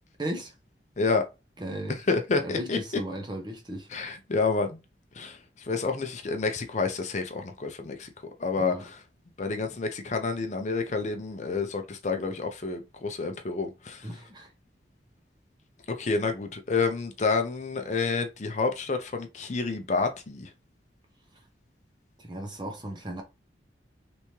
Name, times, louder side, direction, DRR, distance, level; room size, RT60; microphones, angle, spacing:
voice 1, 0.2-0.5 1.6-2.0 2.4-3.9 8.6-8.9 14.0-14.5 22.2-23.2, right 1 dB, 25° right, 0.8 m, -36 dB
voice 2, 2.1-2.8 3.9-4.8 5.1-8.1 8.4-9.0 9.4-14.1 15.9-20.5, left 4 dB, 40° left, 0.5 m, -29 dB
3.4 x 3.0 x 2.8 m
head